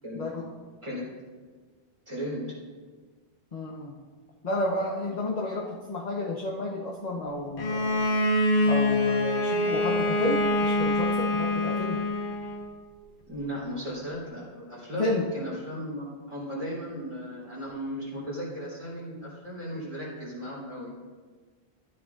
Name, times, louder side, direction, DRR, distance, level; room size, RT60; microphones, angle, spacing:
voice 1, 0.1-0.5 3.5-3.9 4.4-8.1 8.7-12.0 15.0-15.3, left 2 dB, 40° left, -2 dB, 1.0 m, -31 dB
voice 2, 2.1-2.4 13.2-21.0, equal, 35° right, -6 dB, 3.4 m, -36 dB
Bowed string instrument, 7.6-12.7, left 1 dB, 55° left, 1.2 m, -25 dB
13.0 x 10.0 x 2.4 m, 1.5 s
omnidirectional pair, 1.1 m